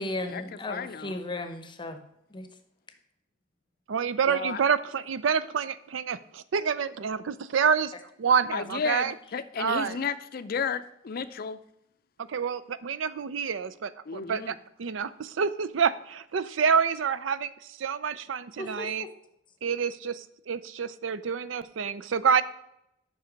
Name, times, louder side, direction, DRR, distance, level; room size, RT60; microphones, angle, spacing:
voice 1, 0.0-2.0 2.3-2.5 18.6-19.1, left 2 dB, 25° left, 7 dB, 0.8 m, -35 dB
voice 2, 0.7-1.2 4.3-4.6 8.5-11.6 14.1-14.5, left 6 dB, 50° left, 12 dB, 0.4 m, -33 dB
voice 3, 3.9-7.9 8.2-9.1 9.6-10.0 12.3-19.1 19.6-22.4, right 6 dB, 70° right, 15 dB, 0.4 m, -28 dB
7.8 x 5.6 x 5.1 m, 0.79 s
head